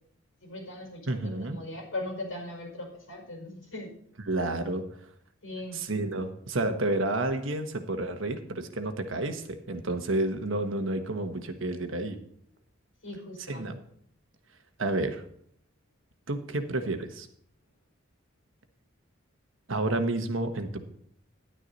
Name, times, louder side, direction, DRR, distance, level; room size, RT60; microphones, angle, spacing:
voice 1, 0.4-3.9 5.4-5.9 13.0-13.7, left 1 dB, 75° left, 2 dB, 5.1 m, -39 dB
voice 2, 1.1-1.6 4.2-4.8 5.7-12.2 13.5-13.8 14.8-15.2 16.3-17.3 19.7-20.8, right 2 dB, 75° right, 7 dB, 1.4 m, -30 dB
11.0 x 9.9 x 4.1 m, 0.66 s
head